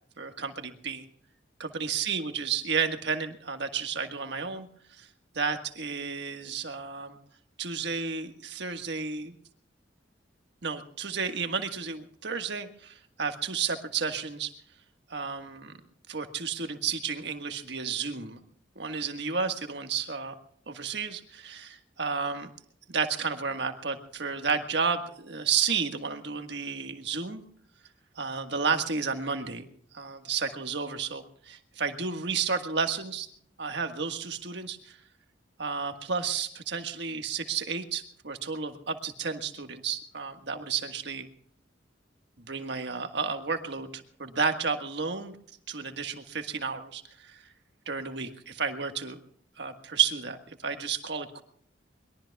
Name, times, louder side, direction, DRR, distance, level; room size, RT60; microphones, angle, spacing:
voice 1, 0.2-1.0 1.6-5.1 5.3-7.2 7.6-9.3 10.6-14.5 15.1-15.7 16.1-18.4 18.7-20.3 20.7-22.5 22.9-27.4 28.1-29.7 29.9-33.3 33.6-35.0 35.6-41.3 42.4-45.4 45.7-47.4 47.8-49.2 49.6-51.4, right 5 dB, 60° right, 7 dB, 1.6 m, -32 dB
23.5 x 21.5 x 2.3 m, 0.62 s
head